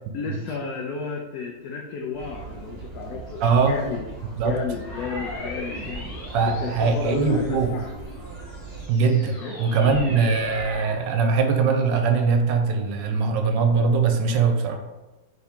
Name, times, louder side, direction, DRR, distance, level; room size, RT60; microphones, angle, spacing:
voice 1, 0.1-4.0 4.4-6.1 6.4-7.9 9.4-9.6, left 4 dB, 70° left, 0 dB, 0.9 m, -32 dB
sound 1, 2.1-8.9, right 2 dB, 35° right, 1.3 m, -40 dB
voice 2, 3.4-3.8 4.4-4.6 6.3-7.7 8.9-14.8, right 5 dB, 75° right, 5 dB, 1.2 m, -21 dB
sound 2, 4.7-7.7 8.3-11.1, left 1 dB, 55° left, 1.5 m, -38 dB
3.6 x 3.5 x 4.3 m, 1.1 s
omnidirectional pair, 2.0 m